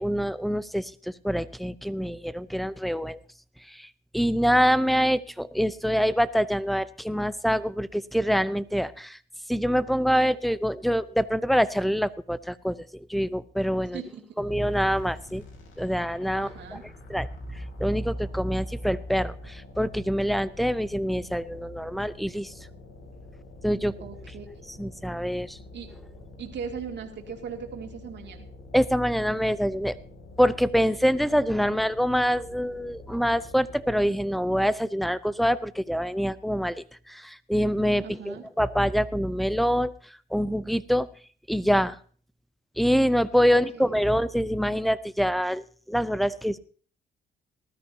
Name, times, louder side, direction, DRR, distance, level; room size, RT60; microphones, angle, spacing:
voice 1, 0.0-3.2 3.7-3.9 4.1-9.2 9.5-14.0 14.4-15.4 15.8-16.5 17.1-22.5 23.6-23.9 24.8-25.6 28.7-30.0 30.4-39.9 40.3-41.1 41.5-42.0 42.8-46.6, equal, ahead, 16 dB, 0.7 m, -25 dB
sound 1, 14.7-34.3, left 2 dB, 85° left, 3.1 m, -47 dB
voice 2, 16.3-16.8 24.0-24.7 25.7-25.9 26.4-28.5 38.0-38.4 43.5-43.9, right 6 dB, 60° right, 2 dB, 2.5 m, -39 dB
19.0 x 13.0 x 2.8 m, 0.43 s
cardioid pair, 90°, 20 cm